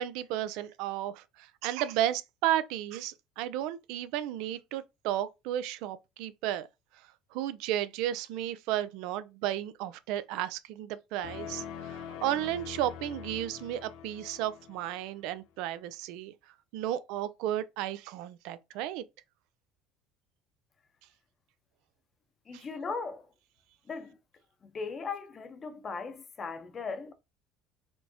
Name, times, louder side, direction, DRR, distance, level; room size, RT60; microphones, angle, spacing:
voice 1, 0.0-6.7 7.3-16.3 16.7-19.0 22.5-22.6, right 12 dB, 75° right, 0.4 m, -33 dB
sound 1, 11.2-15.2, left 8 dB, 75° left, 0.5 m, -43 dB
voice 2, 22.5-23.3 23.9-24.2 24.6-27.1, left 4 dB, 35° left, 0.7 m, -38 dB
4.3 x 2.0 x 2.8 m
supercardioid pair, 85°, 0 cm